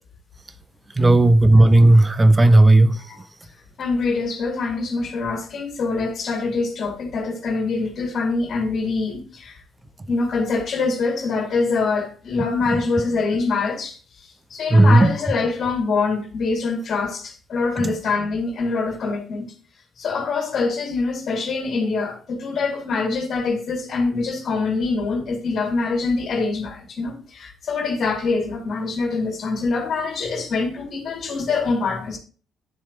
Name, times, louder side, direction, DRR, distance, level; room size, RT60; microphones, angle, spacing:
voice 1, 1.0-3.0 14.7-15.1, right 2 dB, 20° right, 0.7 m, -13 dB
voice 2, 3.8-9.6 10.1-14.0 14.5-19.5 20.0-32.2, left 4 dB, 50° left, 2.2 m, -24 dB
9.5 x 7.2 x 2.9 m
figure-of-eight pair, 45°, 0 cm